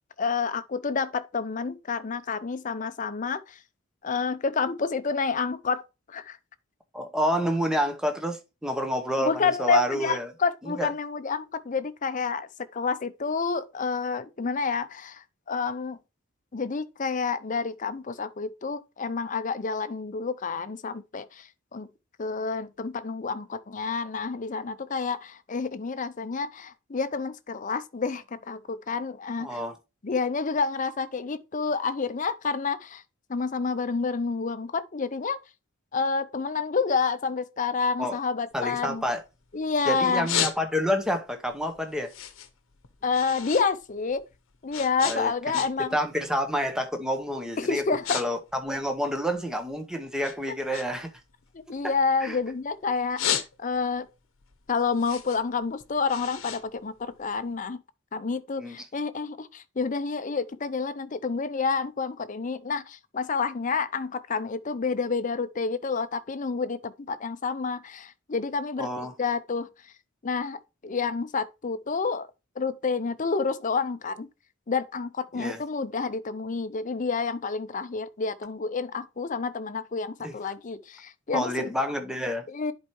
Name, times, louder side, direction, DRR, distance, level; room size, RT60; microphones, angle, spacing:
voice 1, 0.2-3.6 4.0-5.8 6.1-6.4 9.2-16.0 16.5-21.5 21.7-21.9 22.2-29.6 30.0-33.0 33.3-35.4 35.9-39.0 39.5-40.3 43.0-44.2 44.6-46.0 47.6-48.2 51.7-54.1 54.7-57.8 58.1-69.7 70.2-72.3 72.6-74.3 74.7-81.7 82.5-82.7, left 5 dB, 35° left, 0.5 m, -29 dB
voice 2, 6.9-10.3 10.6-10.9 29.4-29.8 38.0-38.2 38.5-39.2 39.9-42.1 45.0-45.6 45.9-51.1 52.2-52.4 58.6-58.8 68.8-69.1 75.3-75.6 80.2-80.3 81.3-82.4, equal, 5° right, 0.9 m, -29 dB
sound 1, 38.5-39.6 40.0-41.1 41.5-43.7 44.0-46.0 46.3-46.6 47.2-47.4 47.7-48.2 48.5-49.7 50.2-52.5 52.9-54.0 54.4-57.5, left 9 dB, 70° left, 0.9 m, -33 dB
10.5 x 4.5 x 3.1 m
head